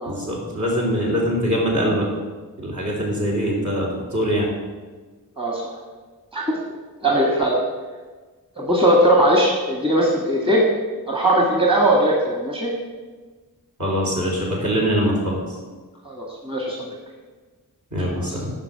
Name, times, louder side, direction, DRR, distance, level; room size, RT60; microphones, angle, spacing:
voice 1, 0.1-2.1 2.6-4.5 13.8-15.4 17.9-18.5, equal, 55° right, -4 dB, 3.8 m, -23 dB
voice 2, 7.0-7.6 8.6-10.7 11.1-12.7 16.1-17.0, right 1 dB, 15° right, -1 dB, 1.8 m, -19 dB
10.5 x 5.4 x 7.9 m, 1.4 s
wide cardioid pair, 90°, 36 cm